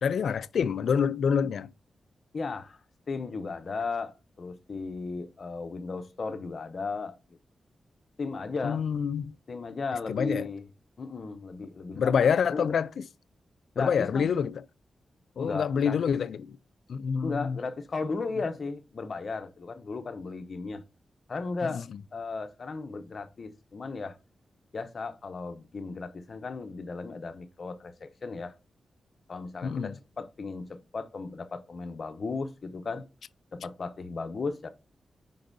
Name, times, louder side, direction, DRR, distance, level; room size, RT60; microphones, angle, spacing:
voice 1, 0.0-1.7 8.6-9.3 10.1-10.5 11.9-13.1 13.8-14.6 15.4-16.5 16.9-17.6 29.6-29.9, left 7 dB, 80° left, 0.3 m, -27 dB
voice 2, 2.3-2.8 3.1-7.4 8.2-8.8 9.5-10.7 11.0-12.7 13.8-14.3 15.4-16.2 17.2-20.8 21.3-21.8 22.1-24.2 24.7-28.5 29.3-33.1 33.5-34.7, left 4 dB, 45° left, 0.8 m, -35 dB
5.4 x 3.8 x 5.2 m
wide cardioid pair, 130°, 0 cm